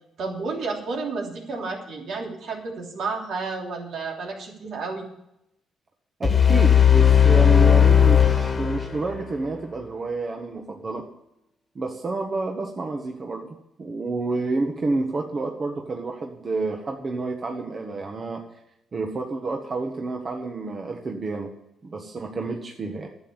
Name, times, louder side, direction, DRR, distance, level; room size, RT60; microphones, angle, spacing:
voice 1, 0.2-5.1, right 4 dB, 70° right, 0 dB, 3.2 m, -31 dB
sound 1, 6.2-9.3, left 8 dB, 35° left, 1.6 m, -16 dB
voice 2, 6.2-11.0 11.7-13.5 13.8-18.4 18.9-21.5 21.8-23.1, right 3 dB, 40° right, 2 dB, 1.5 m, -29 dB
11.0 x 8.0 x 8.3 m, 0.83 s
cardioid pair, 90°, 0 cm